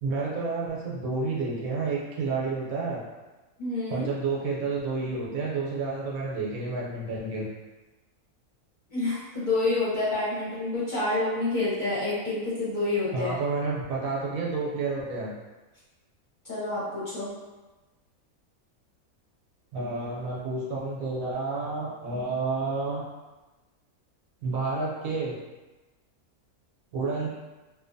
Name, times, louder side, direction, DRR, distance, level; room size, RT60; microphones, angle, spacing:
voice 1, 0.0-3.0 3.9-7.5 13.1-15.3 19.7-23.0 24.4-25.3 26.9-27.3, right 3 dB, 75° right, -4 dB, 1.0 m, -30 dB
voice 2, 3.6-4.1 8.9-13.3 16.4-17.3, left 2 dB, 40° left, -10 dB, 0.8 m, -28 dB
2.7 x 2.2 x 2.5 m, 1.2 s
omnidirectional pair, 1.6 m